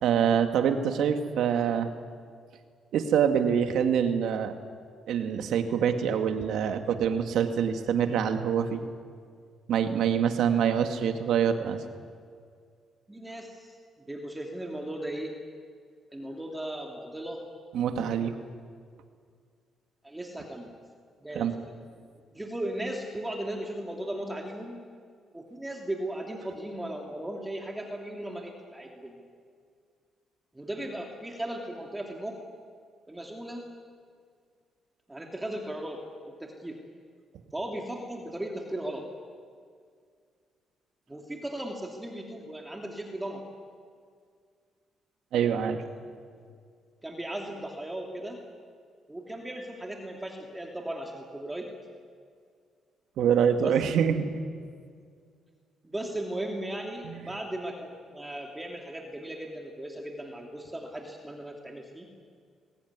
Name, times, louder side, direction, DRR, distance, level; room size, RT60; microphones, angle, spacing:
voice 1, 0.0-1.9 2.9-4.5 5.1-8.8 9.7-11.8 17.7-18.4 21.3-21.5 45.3-45.8 53.2-54.4 57.0-57.4, right 8 dB, 80° right, 6 dB, 2.1 m, -25 dB
voice 2, 13.1-13.8 14.1-15.3 16.1-17.4 20.0-20.7 21.2-21.5 22.3-24.8 25.3-29.3 30.5-32.4 33.1-33.7 35.1-36.8 37.5-39.1 41.1-43.5 47.0-48.4 49.1-51.7 53.6-53.8 55.8-62.1, right 1 dB, 15° right, 1 dB, 2.8 m, -37 dB
22.5 x 18.5 x 9.6 m, 2.1 s
cardioid pair, 90°, 0 cm